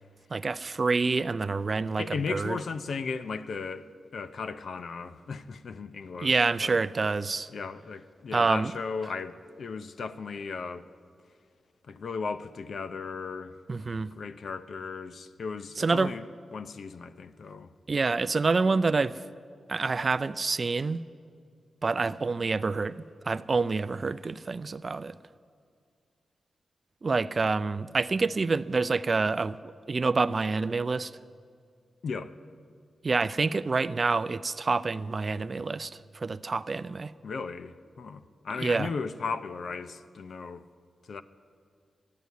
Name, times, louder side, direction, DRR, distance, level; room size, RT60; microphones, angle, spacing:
voice 1, 0.3-2.6 6.2-7.5 8.3-8.7 13.7-14.1 15.8-16.1 17.9-19.2 19.7-21.0 21.8-25.2 27.0-31.1 33.0-37.1 38.6-38.9, right 4 dB, 35° right, 0.3 m, -27 dB
voice 2, 2.0-3.9 4.1-6.8 7.5-10.9 11.8-13.5 13.8-16.2 16.5-17.7 32.0-32.3 37.2-40.6 41.1-41.2, left 5 dB, 60° left, 0.5 m, -36 dB
12.5 x 9.7 x 9.3 m
wide cardioid pair, 145°, 0 cm